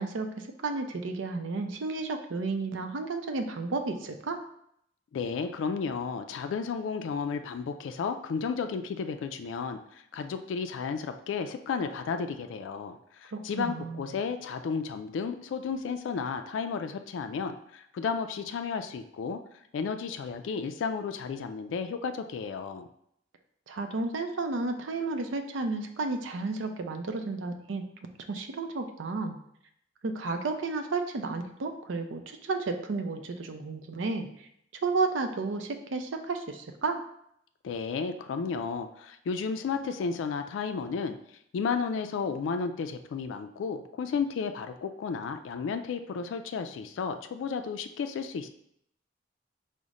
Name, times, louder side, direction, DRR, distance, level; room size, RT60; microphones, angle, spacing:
voice 1, 0.0-4.4 13.3-14.0 23.7-27.8 28.3-29.4 30.0-34.5 34.8-37.0, right 3 dB, 85° right, 6 dB, 0.5 m, -32 dB
voice 2, 5.1-19.4 19.7-22.9 37.6-41.2 41.5-48.5, left 5 dB, 80° left, 7 dB, 0.3 m, -33 dB
4.8 x 2.1 x 4.0 m, 0.72 s
head